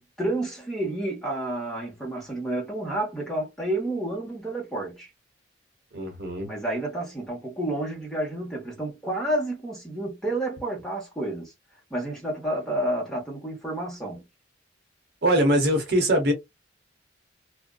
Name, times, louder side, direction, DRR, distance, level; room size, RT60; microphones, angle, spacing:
voice 1, 0.0-5.1 6.4-11.5 11.9-14.2, right 1 dB, 5° left, 1.2 m, -30 dB
voice 2, 5.9-6.5 15.2-16.3, right 1 dB, 60° right, 1.1 m, -22 dB
2.6 x 2.3 x 2.3 m
head